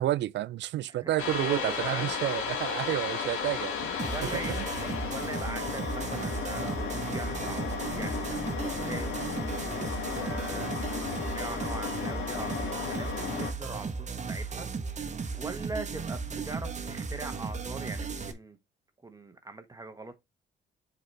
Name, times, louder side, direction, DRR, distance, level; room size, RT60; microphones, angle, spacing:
voice 1, 0.0-4.0 4.5-4.7, right 13 dB, 65° right, 0.4 m, -30 dB
voice 2, 0.9-2.1 4.1-8.3 8.6-18.6 19.0-20.3, right 2 dB, 15° right, 1.3 m, -42 dB
sound 1, 1.2-13.5, left 6 dB, 85° left, 1.8 m, -34 dB
sound 2, 4.0-18.3, right 5 dB, 35° right, 1.2 m, -36 dB
7.5 x 4.2 x 3.3 m
cardioid pair, 90°, 20 cm